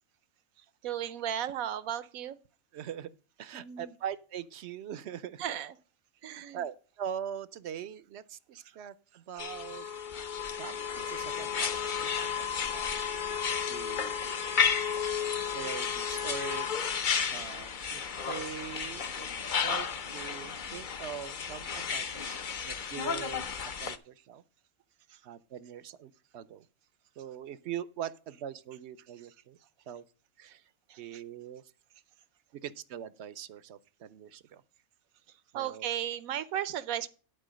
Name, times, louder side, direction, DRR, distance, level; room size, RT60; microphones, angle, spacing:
voice 1, 0.8-2.4 3.5-3.9 5.4-5.7 6.2-6.6 30.9-31.0 35.5-37.1, right 10 dB, 80° right, 1.1 m, -35 dB
voice 2, 2.7-3.1 3.4-5.4 6.3-9.9 10.6-12.0 12.2-12.5 12.7-13.0 13.7-14.4 15.5-16.9 17.3-19.3 19.6-22.4 22.7-24.4 25.2-26.7 27.2-29.6 29.9-30.0 30.4-30.7 31.0-31.6 32.5-34.6 35.5-35.9, right 9 dB, 60° right, 0.8 m, -42 dB
sound 1, 9.4-24.0, left 6 dB, 45° left, 0.7 m, -33 dB
11.0 x 4.5 x 6.2 m
omnidirectional pair, 1.5 m